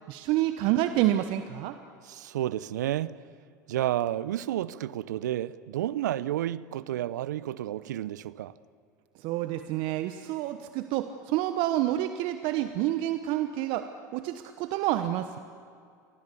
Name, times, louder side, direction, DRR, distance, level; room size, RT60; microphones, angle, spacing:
voice 1, 0.1-1.8 9.2-15.3, right 14 dB, 60° right, 1.1 m, -28 dB
voice 2, 2.0-3.2 3.7-8.5, right 12 dB, 75° right, 0.7 m, -31 dB
30.0 x 23.5 x 7.1 m
hypercardioid pair, 75°, 10 cm